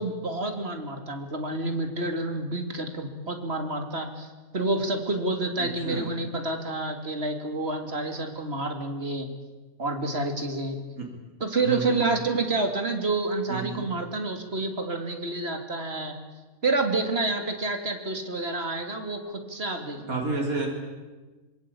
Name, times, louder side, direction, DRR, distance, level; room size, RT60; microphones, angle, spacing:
voice 1, 0.0-4.3 4.5-9.3 9.8-10.8 11.4-16.1 16.6-19.2 19.5-20.2, right 2 dB, 45° right, 5 dB, 3.1 m, -29 dB
voice 2, 5.6-6.1 11.0-11.1 11.6-12.0 13.5-13.8 20.0-20.7, right 3 dB, 80° right, 0 dB, 4.1 m, -30 dB
26.0 x 22.5 x 8.7 m, 1.2 s
omnidirectional pair, 1.5 m